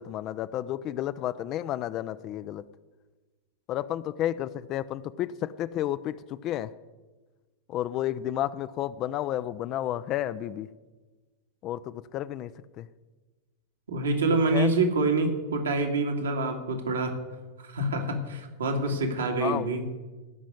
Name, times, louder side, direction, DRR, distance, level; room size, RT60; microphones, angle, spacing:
voice 1, 0.0-2.6 3.7-6.7 7.7-10.7 11.6-12.5 12.8-12.9 14.5-14.7 19.4-19.7, left 12 dB, 35° left, 0.5 m, -31 dB
voice 2, 13.9-17.1 17.6-19.8, right 2 dB, 70° right, 2.1 m, -26 dB
16.0 x 6.2 x 9.6 m
figure-of-eight pair, 90°, 0 cm